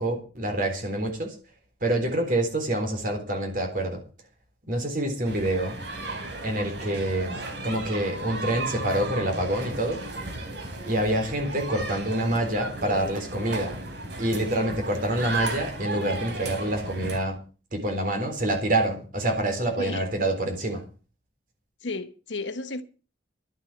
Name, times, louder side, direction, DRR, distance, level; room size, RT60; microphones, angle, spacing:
voice 1, 0.0-1.3 1.8-4.0 4.7-5.8 6.4-10.0 10.9-13.8 14.2-17.4 17.7-20.8, right 1 dB, 50° right, 3.8 m, -27 dB
sound 1, 5.2-17.2, right 2 dB, 70° right, 3.7 m, -35 dB
voice 2, 21.8-22.8, left 3 dB, 85° left, 1.3 m, -33 dB
12.0 x 9.0 x 7.4 m
head